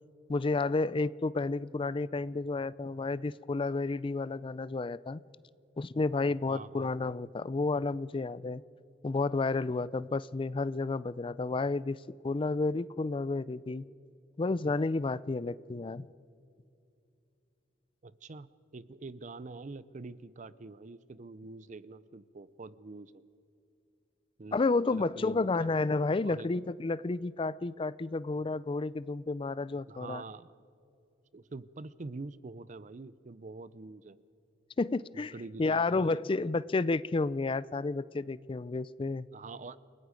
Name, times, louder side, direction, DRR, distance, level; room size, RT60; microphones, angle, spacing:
voice 1, 0.3-5.2 5.8-8.6 9.0-12.0 12.2-13.8 14.4-16.1 24.5-30.2 34.8-35.3 35.6-39.3, left 3 dB, 30° left, 18 dB, 0.4 m, -31 dB
voice 2, 6.5-7.1 18.0-23.2 24.4-24.6 24.9-25.7 26.2-26.5 29.9-30.5 31.3-34.2 35.1-36.2 39.3-39.8, right 3 dB, 40° right, 16 dB, 0.5 m, -45 dB
29.0 x 18.5 x 5.2 m, 2.6 s
head